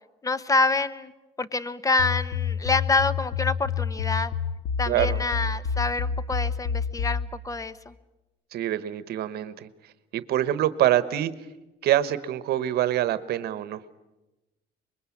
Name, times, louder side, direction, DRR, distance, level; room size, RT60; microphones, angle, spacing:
voice 1, 0.2-1.1 1.4-4.3 4.8-7.9, left 3 dB, 20° left, 16 dB, 1.1 m, -26 dB
sound 1, 2.0-7.3, left 6 dB, 70° left, 2.1 m, -28 dB
voice 2, 4.9-5.2 8.5-9.7 10.1-11.3 11.8-13.8, right 12 dB, 70° right, 14 dB, 1.1 m, -25 dB
25.0 x 21.5 x 8.5 m, 1.0 s
cardioid pair, 110°, 17 cm